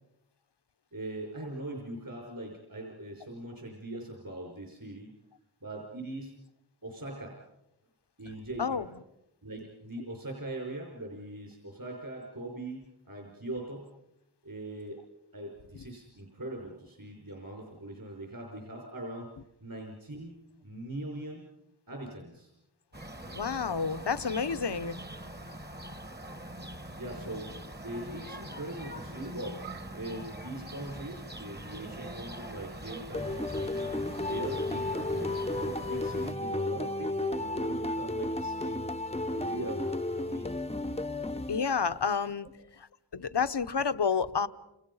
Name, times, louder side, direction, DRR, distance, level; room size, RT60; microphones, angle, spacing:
voice 1, 0.9-5.1 5.6-6.3 6.8-7.4 8.2-8.9 9.4-13.9 14.4-15.0 15.3-19.3 19.6-21.5 21.9-22.5 27.0-27.6 27.8-38.9 39.3-40.5 42.4-42.5, right 1 dB, 55° right, 0 dB, 5.6 m, -41 dB
sound 1, 22.9-36.3, right 1 dB, 25° right, 1.4 m, -43 dB
voice 2, 23.3-25.0 41.5-42.5 43.1-44.5, left 6 dB, 70° left, 13 dB, 1.0 m, -29 dB
sound 2, 33.1-42.1, left 2 dB, 15° left, 0.9 m, -33 dB
29.5 x 28.0 x 5.6 m, 0.86 s
wide cardioid pair, 50°, 42 cm